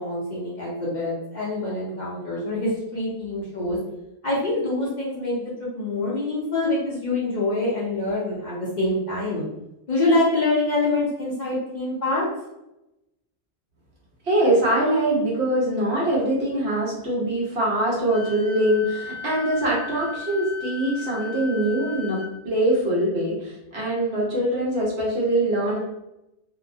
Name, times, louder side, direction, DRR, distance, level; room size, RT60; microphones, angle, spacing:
voice 1, 0.0-3.8 4.2-9.4 9.9-12.3, left 2 dB, 50° left, -5 dB, 0.6 m, -25 dB
voice 2, 14.2-25.8, right 1 dB, 70° right, -4 dB, 1.1 m, -23 dB
Wind instrument woodwind instrument, 18.1-22.3, left 5 dB, 85° right, 0.9 m, -36 dB
2.8 x 2.0 x 2.5 m, 0.90 s
omnidirectional pair, 1.2 m